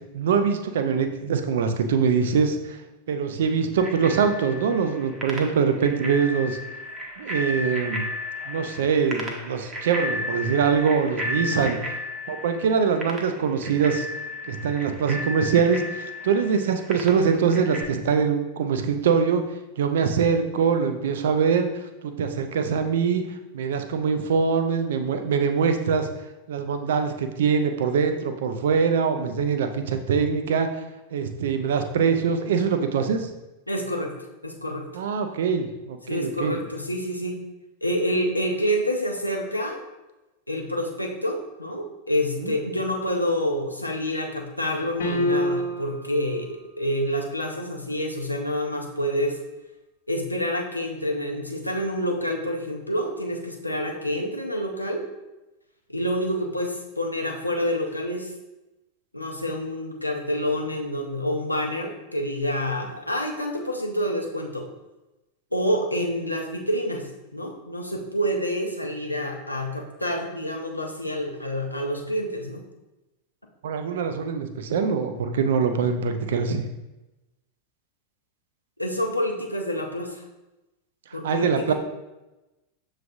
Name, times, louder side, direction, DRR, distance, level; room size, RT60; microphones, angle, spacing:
voice 1, 0.1-2.8 3.1-6.6 7.2-8.0 8.5-11.8 12.3-14.1 14.5-19.4 19.8-21.7 22.0-23.2 23.5-26.1 26.5-30.7 31.1-33.3 34.9-36.6 42.4-42.5 73.6-76.6 81.1-81.7, right 6 dB, 60° right, 7 dB, 0.5 m, -23 dB
Bicycle bell, 3.8-17.8, left 1 dB, 20° right, 0.8 m, -34 dB
voice 2, 33.7-34.2 34.4-34.9 36.1-37.4 37.8-39.8 40.5-49.4 50.1-55.0 55.9-58.3 59.1-64.6 65.5-72.6 78.8-80.2 81.1-81.7, equal, 85° left, 1 dB, 0.7 m, -28 dB
sound 1, 45.0-46.1, left 1 dB, 60° left, 1.0 m, -25 dB
6.8 x 3.1 x 2.5 m, 1.0 s
figure-of-eight pair, 90°, 0 cm